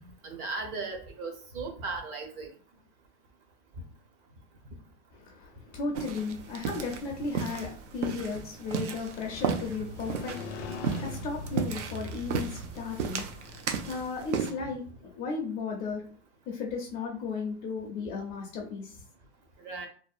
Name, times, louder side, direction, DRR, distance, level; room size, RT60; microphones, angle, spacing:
voice 1, 0.0-2.5 19.6-19.9, right 3 dB, 35° right, 0.7 m, -37 dB
voice 2, 5.1-13.3 13.9-16.0 16.5-19.0, left 4 dB, 25° left, 0.5 m, -35 dB
sound 1, 5.9-14.5, right 7 dB, 85° right, 0.5 m, -35 dB
Motorcycle, 8.8-14.7, left 2 dB, 80° left, 0.6 m, -42 dB
2.6 x 2.0 x 2.4 m
hypercardioid pair, 135°, 35 cm